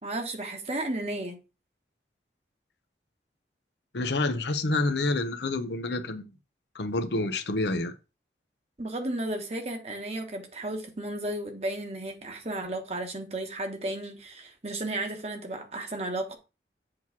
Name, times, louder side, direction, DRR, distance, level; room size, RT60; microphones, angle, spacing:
voice 1, 0.0-1.4 8.8-16.3, right 1 dB, 35° right, 1.2 m, -33 dB
voice 2, 3.9-6.3 6.7-7.9, left 2 dB, 75° left, 0.8 m, -28 dB
7.7 x 3.1 x 5.9 m
head